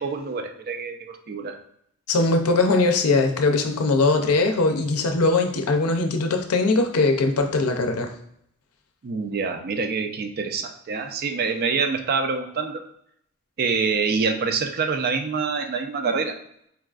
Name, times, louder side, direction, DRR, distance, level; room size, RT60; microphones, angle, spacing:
voice 1, 0.0-1.6 9.0-12.8 13.6-16.4, right 5 dB, 45° right, 6 dB, 0.4 m, -26 dB
voice 2, 2.1-8.1, left 3 dB, 75° left, 5 dB, 0.5 m, -21 dB
4.5 x 2.4 x 2.3 m, 0.72 s
head